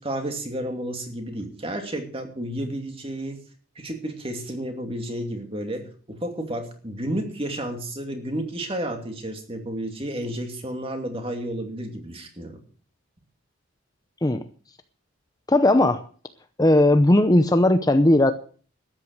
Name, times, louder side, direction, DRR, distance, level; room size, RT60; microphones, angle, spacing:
voice 1, 0.0-3.4 3.7-12.6, right 1 dB, 25° right, 4 dB, 2.6 m, -31 dB
voice 2, 15.5-16.0 16.6-18.3, left 1 dB, 20° left, 9 dB, 0.6 m, -17 dB
13.0 x 10.0 x 6.5 m, 0.43 s
head